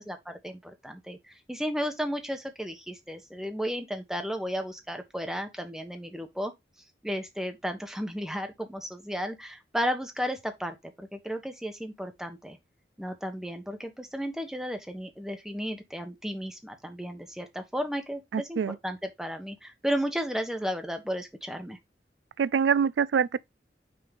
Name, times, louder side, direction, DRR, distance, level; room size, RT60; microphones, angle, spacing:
voice 1, 0.0-6.5 7.0-12.6 13.0-21.8, equal, 5° right, 1.1 m, -34 dB
voice 2, 18.3-18.7 22.4-23.4, right 7 dB, 85° right, 0.3 m, -25 dB
6.0 x 4.7 x 3.6 m
head